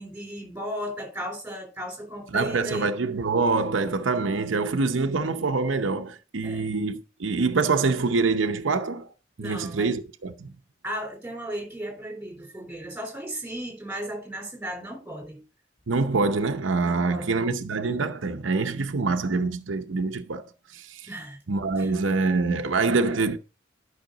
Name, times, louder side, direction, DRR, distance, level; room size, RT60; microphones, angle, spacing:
voice 1, 0.0-2.9 6.4-6.7 9.4-9.9 10.8-15.4 16.8-17.4 21.1-21.4 21.8-21.9, equal, 10° right, 3.8 m, -35 dB
voice 2, 2.3-9.1 9.4-10.5 15.9-20.5 20.7-21.1 21.5-23.4, right 3 dB, 90° right, 0.7 m, -25 dB
12.0 x 5.7 x 3.9 m
head